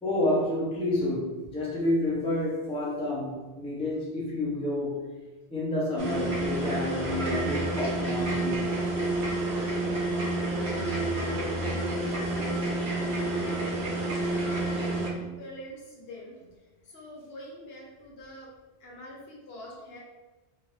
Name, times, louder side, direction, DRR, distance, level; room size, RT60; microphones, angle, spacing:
voice 1, 0.0-5.0 5.5-8.7, left 1 dB, 10° left, -5 dB, 0.4 m, -29 dB
sound 1, 6.0-15.1, right 2 dB, 75° right, 1.0 m, -29 dB
voice 2, 11.1-11.4 11.7-13.6 13.9-14.9 15.1-18.5 18.8-20.0, equal, 65° left, -3 dB, 1.0 m, -46 dB
2.9 x 2.4 x 3.0 m, 1.2 s
omnidirectional pair, 1.1 m